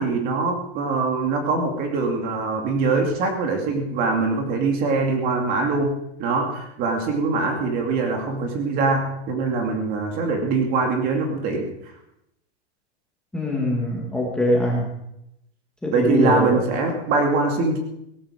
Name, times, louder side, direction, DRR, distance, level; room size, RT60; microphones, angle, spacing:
voice 1, 0.0-11.9 15.9-17.8, right 3 dB, 25° right, 3 dB, 2.5 m, -23 dB
voice 2, 13.3-14.9 15.8-16.6, left 1 dB, ahead, -3 dB, 1.8 m, -23 dB
17.5 x 13.5 x 4.9 m, 0.81 s
supercardioid pair, 170°, 33 cm